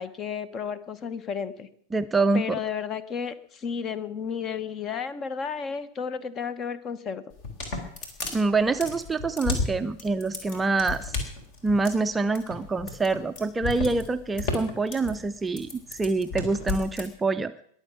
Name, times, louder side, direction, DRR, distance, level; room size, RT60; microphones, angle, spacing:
voice 1, 0.0-1.7 2.3-7.2, left 6 dB, 30° left, 16 dB, 1.0 m, -32 dB
voice 2, 1.9-2.6 8.3-11.2 11.6-17.6, right 3 dB, 10° right, 10 dB, 0.5 m, -26 dB
sound 1, 7.3-17.1, left 3 dB, 45° left, 3.8 m, -33 dB
21.5 x 7.1 x 7.2 m, 0.65 s
figure-of-eight pair, 90°, 0 cm